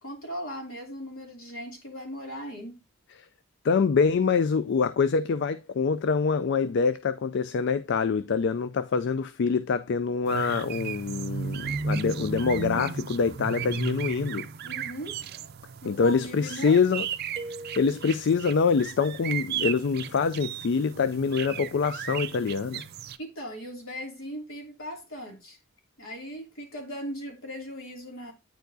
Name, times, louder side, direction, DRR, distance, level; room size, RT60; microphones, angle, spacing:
voice 1, 0.0-2.8 14.6-15.2 15.8-16.8 23.2-25.6 26.0-28.3, equal, 70° left, 2.7 m, -38 dB
voice 2, 3.6-14.5 15.8-17.1 17.8-22.8, left 5 dB, 55° left, 0.4 m, -25 dB
sound 1, 10.2-23.2, right 6 dB, 50° right, 0.4 m, -35 dB
sound 2, 17.4-18.5, right 2 dB, 30° right, 0.8 m, -41 dB
9.1 x 4.6 x 2.6 m
head